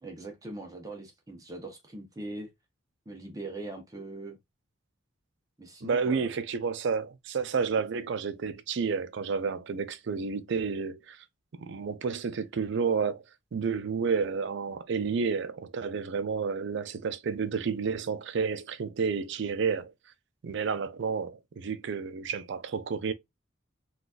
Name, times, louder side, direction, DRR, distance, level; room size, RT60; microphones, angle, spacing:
voice 1, 0.0-2.5 3.1-4.4 5.6-6.3, right 2 dB, 20° right, 0.7 m, -41 dB
voice 2, 5.8-11.2 11.6-13.2 13.5-19.9 20.4-23.1, right 5 dB, 65° right, 0.4 m, -30 dB
3.9 x 2.4 x 2.3 m
head